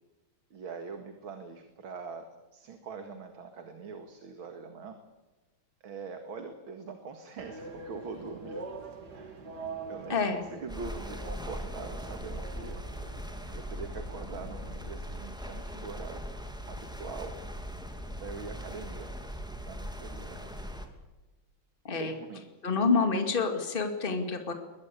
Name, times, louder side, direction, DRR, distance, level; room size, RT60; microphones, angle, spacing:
voice 1, 0.5-2.2 2.5-5.0 5.8-8.6 9.1-12.8 13.5-16.2 16.7-17.3 18.2-19.1 19.6-20.5 21.9-22.5 22.9-23.0, right 5 dB, 75° right, 6 dB, 2.7 m, -43 dB
sound 1, 7.4-14.9, right 3 dB, 50° right, 3.3 m, -45 dB
voice 2, 10.1-10.4 21.8-22.1 22.6-24.5, left 4 dB, 25° left, 6 dB, 2.4 m, -27 dB
sound 2, 10.7-20.9, equal, ahead, 2.5 m, -40 dB
22.0 x 21.0 x 8.5 m, 1.1 s
omnidirectional pair, 2.3 m